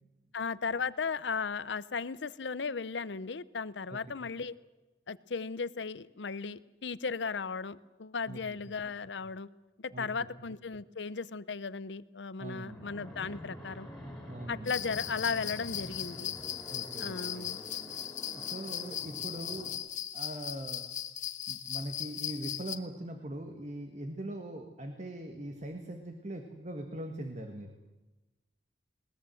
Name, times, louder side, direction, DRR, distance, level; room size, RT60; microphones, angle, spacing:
voice 1, 0.3-4.5 5.1-9.5 9.8-13.9 14.5-16.3 17.0-17.6, left 5 dB, 75° left, 17 dB, 0.7 m, -36 dB
voice 2, 12.4-12.9 14.2-14.7 16.7-17.5 18.3-19.7 20.1-20.9 21.5-27.7, right 1 dB, 40° right, 6 dB, 1.6 m, -41 dB
Fixed-wing aircraft airplane, 12.7-19.8, left 1 dB, ahead, 4.3 m, -47 dB
sound 1, 14.7-22.8, left 11 dB, 45° left, 1.0 m, -38 dB
21.0 x 19.5 x 7.7 m, 1.1 s
head